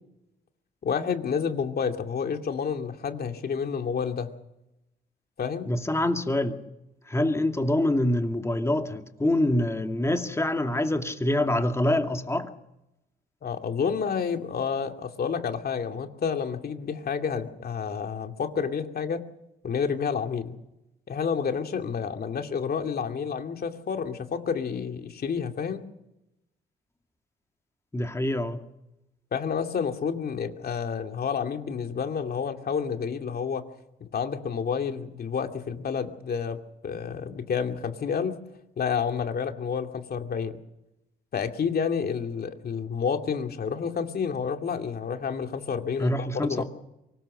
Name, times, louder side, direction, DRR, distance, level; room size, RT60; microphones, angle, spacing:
voice 1, 0.8-4.3 5.4-5.7 13.4-19.2 19.6-20.6 21.1-25.9 29.3-33.6 34.0-36.6 36.8-38.4 38.8-40.5 41.3-46.6, left 6 dB, 50° left, 2.6 m, -29 dB
voice 2, 5.7-6.6 7.1-12.5 27.9-28.6 46.0-46.6, left 1 dB, 15° left, 2.4 m, -25 dB
24.0 x 20.0 x 6.6 m
cardioid pair, 90°, 20 cm